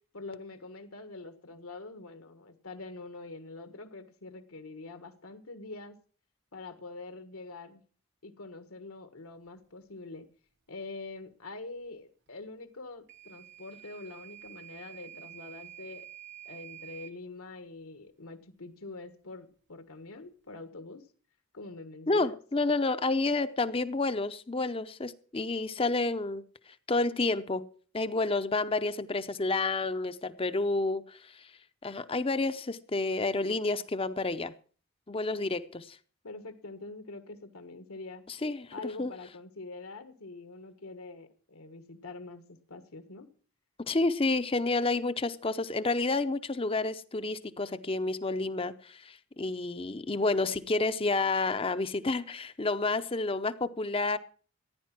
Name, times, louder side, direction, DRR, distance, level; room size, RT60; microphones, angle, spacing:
voice 1, 0.1-6.0 6.5-7.8 8.2-10.3 10.7-16.1 16.4-21.1 21.5-22.4 35.4-35.5 36.2-38.2 38.7-42.4 42.7-43.3, left 3 dB, 80° left, 1.5 m, -45 dB
Microwave oven / Alarm, 13.1-17.2, right 13 dB, 50° right, 0.8 m, -48 dB
voice 2, 22.1-27.7 27.9-31.5 31.8-34.5 35.1-35.9 38.3-38.7 39.0-39.1 43.9-54.2, left 3 dB, 25° left, 0.6 m, -30 dB
15.0 x 10.0 x 5.9 m
head